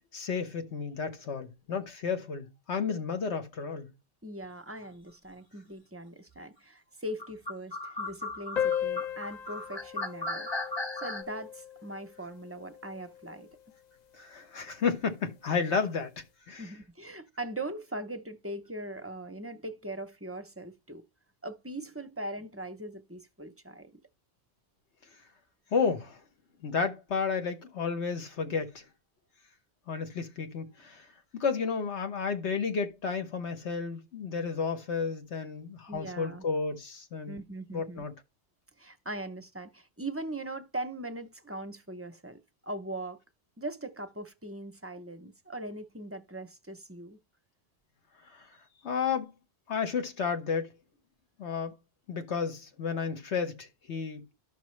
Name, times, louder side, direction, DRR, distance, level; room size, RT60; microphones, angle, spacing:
voice 1, 0.1-3.9 14.1-16.1 16.5-16.6 25.7-26.2 26.6-28.8 29.9-31.1 31.3-37.4 37.7-38.1 48.3-48.5 48.8-49.3 49.7-50.7 51.4-51.8 52.1-54.3, left 5 dB, 75° left, 1.4 m, -32 dB
voice 2, 4.2-10.5 11.0-13.5 16.6-21.0 21.4-23.9 35.9-36.4 37.3-38.1 38.8-43.2 43.6-47.2, right 1 dB, 20° right, 0.4 m, -40 dB
sound 1, 7.2-11.2, left 2 dB, 25° left, 1.3 m, -36 dB
sound 2, 8.6-13.5, left 9 dB, 50° left, 0.5 m, -36 dB
12.5 x 6.0 x 3.2 m
omnidirectional pair, 1.1 m